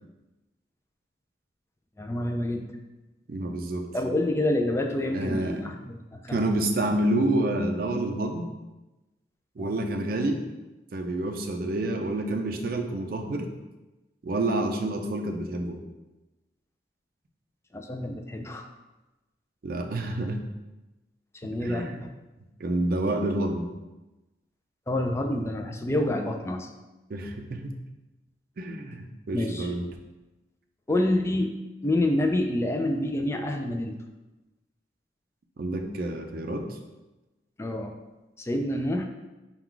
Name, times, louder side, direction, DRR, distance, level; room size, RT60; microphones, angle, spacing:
voice 1, 2.0-2.7 3.9-6.5 9.6-9.8 17.7-18.7 21.4-21.9 24.9-26.7 29.3-29.7 30.9-31.5 31.8-34.0 37.6-37.9 38.4-39.0, left 1 dB, 15° left, 4 dB, 0.3 m, -27 dB
voice 2, 3.3-3.9 5.1-5.8 6.3-8.5 9.6-10.4 10.9-13.5 14.2-15.8 19.6-20.4 21.4-22.0 22.6-23.7 27.1-27.8 28.6-29.9 35.6-36.7, right 1 dB, 55° right, 4 dB, 0.4 m, -28 dB
4.4 x 2.3 x 3.8 m, 1.1 s
head